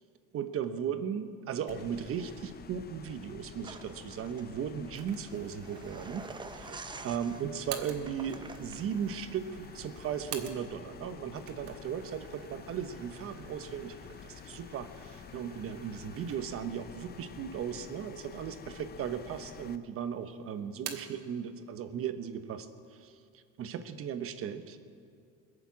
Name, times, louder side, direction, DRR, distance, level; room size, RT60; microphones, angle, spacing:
voice 1, 0.3-24.8, right 8 dB, 40° right, 10 dB, 1.1 m, -37 dB
sound 1, 1.7-19.8, left 8 dB, 30° left, 0.7 m, -49 dB
sound 2, 3.6-9.1, right 4 dB, 15° right, 0.6 m, -48 dB
sound 3, 4.9-10.9 11.3-16.7 17.2-17.3 18.1-18.8 19.1-19.8 20.1-21.2, right 9 dB, 70° right, 1.7 m, -49 dB
21.0 x 7.1 x 8.5 m, 2.4 s
supercardioid pair, 120°, 34 cm